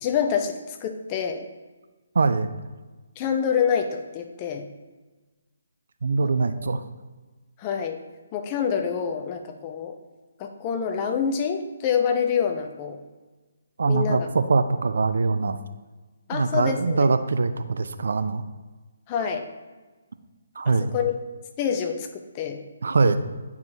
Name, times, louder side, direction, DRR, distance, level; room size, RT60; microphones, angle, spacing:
voice 1, 0.0-1.4 3.2-4.7 6.2-6.5 7.6-8.0 8.3-10.0 10.4-13.0 13.9-14.3 16.3-17.0 19.1-19.5 20.7-21.1 21.6-22.6, left 7 dB, 25° left, 5 dB, 0.5 m, -26 dB
voice 2, 2.2-2.5 6.0-6.8 13.8-15.6 16.3-18.4 20.6-20.9 22.8-23.2, right 4 dB, 55° right, 10 dB, 0.3 m, -22 dB
9.3 x 4.8 x 2.7 m, 1.3 s
figure-of-eight pair, 140°, 0 cm